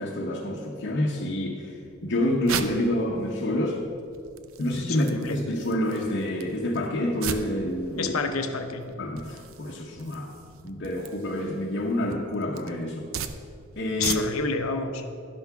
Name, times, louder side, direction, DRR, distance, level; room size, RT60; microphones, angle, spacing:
voice 1, 0.0-1.8 2.0-3.8 4.6-8.1 9.0-10.3 10.6-13.1 13.8-14.2, left 1 dB, 50° left, -2 dB, 0.9 m, -28 dB
sound 1, 1.8-14.6, right 6 dB, 75° right, 0.5 m, -39 dB
voice 2, 4.9-5.4 8.0-8.9 14.0-15.0, left 4 dB, 90° left, 7 dB, 0.8 m, -29 dB
11.5 x 5.9 x 5.7 m, 2.5 s
head